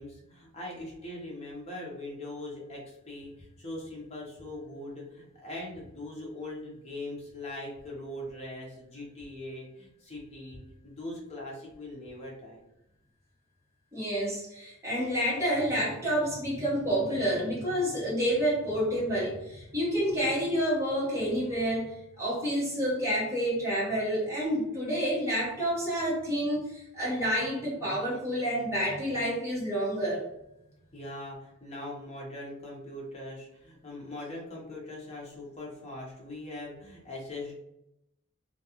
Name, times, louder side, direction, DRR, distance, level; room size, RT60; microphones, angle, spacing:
voice 1, 0.0-12.6 30.9-37.6, left 1 dB, 30° left, -3 dB, 0.7 m, -41 dB
voice 2, 13.9-21.9 22.2-30.2, equal, 15° right, -8 dB, 1.0 m, -29 dB
2.4 x 2.3 x 2.8 m, 0.83 s
head